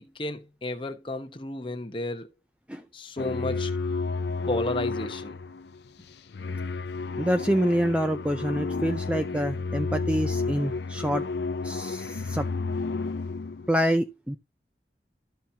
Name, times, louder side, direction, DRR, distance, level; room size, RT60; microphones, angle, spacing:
voice 1, 0.0-2.3 2.9-3.7 4.5-5.4, left 1 dB, 30° left, 1.0 m, -32 dB
sound 1, 3.2-13.7, left 4 dB, 70° left, 0.5 m, -31 dB
voice 2, 7.2-11.3 11.6-12.5 13.7-14.4, equal, 5° right, 0.5 m, -26 dB
13.5 x 5.8 x 2.8 m
head